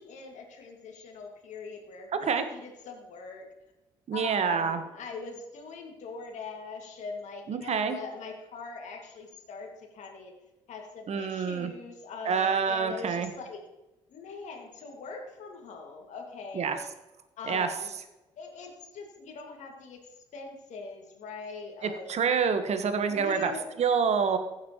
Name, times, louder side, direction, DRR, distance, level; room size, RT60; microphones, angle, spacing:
voice 1, 0.0-3.5 4.1-10.3 10.7-13.6 14.1-16.8 17.4-17.9 18.4-22.1 23.1-23.7, left 4 dB, 60° left, 1 dB, 2.1 m, -42 dB
voice 2, 4.1-4.8 7.5-8.0 11.1-11.7 12.2-13.3 16.5-16.8 17.5-17.7 22.1-23.5 23.8-24.4, right 6 dB, 55° right, 8 dB, 1.3 m, -27 dB
15.5 x 7.4 x 3.1 m, 1.0 s
hypercardioid pair, 50°, 14 cm